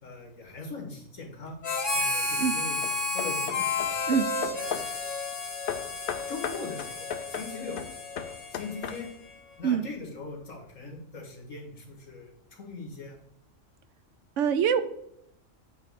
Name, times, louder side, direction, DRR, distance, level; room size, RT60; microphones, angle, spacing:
voice 1, 0.0-1.6 1.9-2.8 3.1-4.0 4.5-5.1 6.3-7.8 8.5-9.1 9.6-13.2, left 3 dB, 80° left, 1 dB, 2.2 m, -41 dB
Hammer / Wood, 1.5-1.9 2.6-5.0 5.7-9.3, left 8 dB, 60° left, 0.5 m, -38 dB
Harmonica, 1.6-9.4, left 3 dB, 40° left, 1.4 m, -32 dB
voice 2, 14.4-14.8, right 7 dB, 75° right, 12 dB, 0.9 m, -24 dB
8.3 x 3.1 x 6.4 m, 0.77 s
omnidirectional pair, 1.3 m